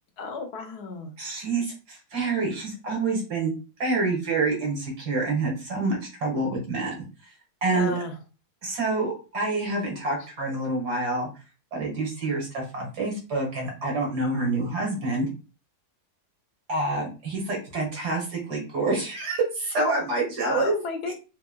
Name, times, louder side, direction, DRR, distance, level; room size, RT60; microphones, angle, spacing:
voice 1, 0.2-1.1 7.7-8.1 20.4-21.1, left 3 dB, 80° left, 4 dB, 1.5 m, -33 dB
voice 2, 1.2-3.5 3.8-6.9 7.6-7.9 8.6-11.3 11.7-15.3 16.7-20.7 21.1-21.2, right 3 dB, 85° right, 0 dB, 2.4 m, -27 dB
5.6 x 3.4 x 2.3 m, 0.32 s
omnidirectional pair, 1.7 m